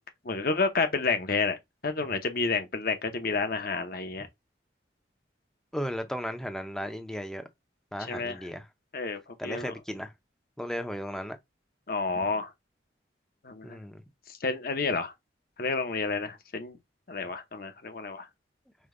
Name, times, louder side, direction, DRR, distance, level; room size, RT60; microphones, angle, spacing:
voice 1, 0.2-4.3 8.1-8.5 8.9-9.7 11.9-12.5 13.4-13.8 14.3-15.1 15.6-16.8 17.1-18.3, left 4 dB, 50° left, 0.8 m, -30 dB
voice 2, 5.7-7.4 7.9-8.7 9.4-10.1 10.6-11.4 13.6-14.0, equal, 5° left, 0.5 m, -35 dB
5.1 x 2.2 x 3.7 m
head